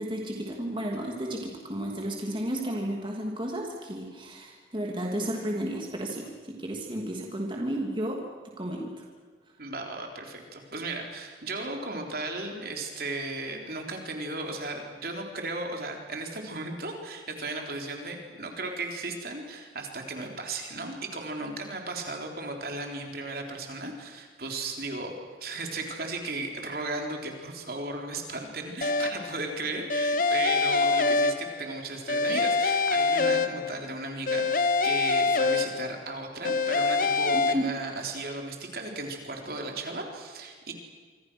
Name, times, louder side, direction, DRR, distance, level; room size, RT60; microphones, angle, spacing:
voice 1, 0.0-8.2 8.6-9.1 37.3-37.6, right 1 dB, 30° right, 0 dB, 3.0 m, -33 dB
voice 2, 9.6-25.1 25.4-40.7, right 2 dB, 55° right, 2 dB, 3.8 m, -35 dB
sound 1, 28.8-29.4 29.9-31.8 32.1-33.9 34.3-36.1 36.4-37.5, left 4 dB, 50° left, 1.0 m, -25 dB
27.0 x 25.5 x 6.3 m, 1.5 s
head